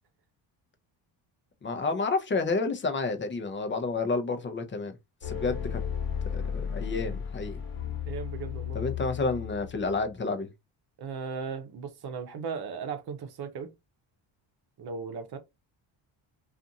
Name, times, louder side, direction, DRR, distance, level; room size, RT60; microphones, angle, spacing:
voice 1, 1.6-4.9 5.2-5.8 6.3-6.4 6.7-7.6 8.7-10.5, left 3 dB, 25° left, 0.6 m, -30 dB
sound 1, 5.2-10.1, left 8 dB, 45° left, 1.2 m, -34 dB
voice 2, 8.1-8.8 11.0-13.7 14.8-15.4, right 6 dB, 55° right, 0.8 m, -37 dB
2.5 x 2.5 x 2.7 m
cardioid pair, 90°, 46 cm